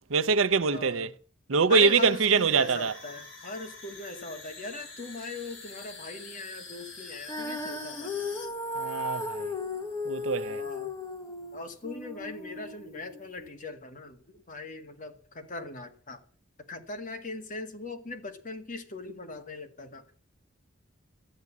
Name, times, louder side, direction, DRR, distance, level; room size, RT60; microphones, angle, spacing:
voice 1, 0.1-1.1 1.5-2.9 8.8-9.5 10.1-10.6, right 5 dB, 75° right, 0.7 m, -24 dB
voice 2, 0.7-1.1 1.7-8.1 10.5-10.9 11.5-16.2 16.7-20.0, left 3 dB, 40° left, 1.8 m, -40 dB
sound 1, 1.9-8.5, left 4 dB, 65° left, 5.5 m, -46 dB
Female singing, 7.3-13.5, left 2 dB, 15° left, 1.7 m, -36 dB
13.5 x 9.6 x 7.3 m
head